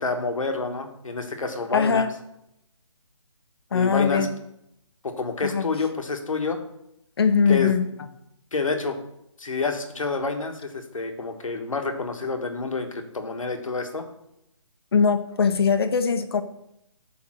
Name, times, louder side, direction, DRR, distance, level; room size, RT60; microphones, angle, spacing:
voice 1, 0.0-2.1 3.7-4.3 5.0-6.6 7.5-7.7 8.5-9.0 9.4-14.1, left 3 dB, 80° left, 5 dB, 1.3 m, -28 dB
voice 2, 1.7-2.1 3.7-4.3 5.4-5.7 7.2-7.8 14.9-16.4, left 6 dB, 50° left, 9 dB, 0.7 m, -21 dB
8.7 x 3.5 x 6.1 m, 0.80 s
hypercardioid pair, 160°, 17 cm